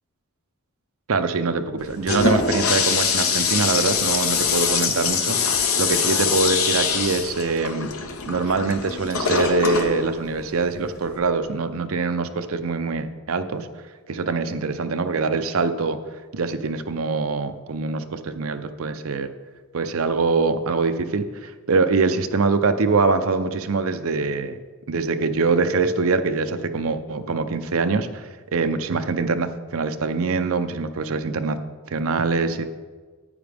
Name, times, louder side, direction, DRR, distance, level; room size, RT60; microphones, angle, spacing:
voice 1, 1.1-5.4 5.8-7.9 8.3-13.7 14.1-16.0 16.3-19.3 19.7-24.6 24.9-31.6 31.9-32.7, right 4 dB, 65° right, 9 dB, 0.6 m, -24 dB
Toilet flush, 1.8-11.2, left 5 dB, 70° left, 0.9 m, -24 dB
9.9 x 8.9 x 3.5 m, 1.4 s
head